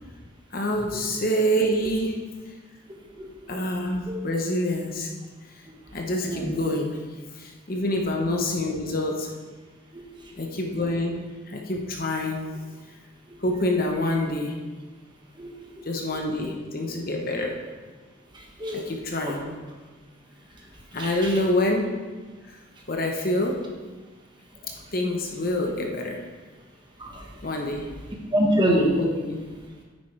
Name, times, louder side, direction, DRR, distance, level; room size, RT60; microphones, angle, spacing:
voice 1, 0.5-2.2 2.5-2.6 3.5-5.1 5.9-7.0 7.3-9.3 10.4-12.4 13.4-14.6 15.8-17.6 18.7-19.4 20.9-21.9 22.5-22.6 22.9-23.6 24.9-26.3 27.4-27.9 29.0-29.4, left 1 dB, 45° left, 2 dB, 1.0 m, -26 dB
voice 2, 15.4-15.8 18.6-18.8 19.3-19.4 21.0-21.1 27.0-27.1 28.3-28.9, equal, 20° right, -1 dB, 1.3 m, -24 dB
9.7 x 9.4 x 3.3 m, 1.3 s
head